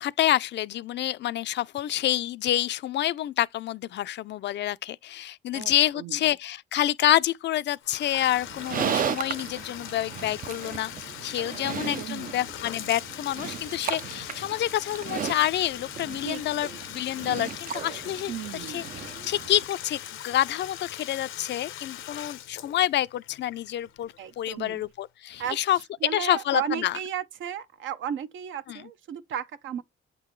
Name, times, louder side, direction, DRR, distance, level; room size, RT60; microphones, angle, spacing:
voice 1, 0.0-18.8 19.2-25.8 26.1-27.0 28.7-28.8, left 13 dB, 60° left, 0.4 m, -28 dB
voice 2, 5.5-6.2 11.6-12.4 16.2-16.8 18.3-18.9 24.2-24.8 25.4-25.6 26.0-29.8, right 9 dB, 75° right, 0.8 m, -35 dB
Bathtub (filling or washing), 7.8-24.5, left 11 dB, 85° left, 0.8 m, -41 dB
Livestock farm animals working animals, 8.4-19.6, right 8 dB, 45° right, 0.5 m, -35 dB
8.1 x 3.8 x 3.1 m
cardioid pair, 90°, 20 cm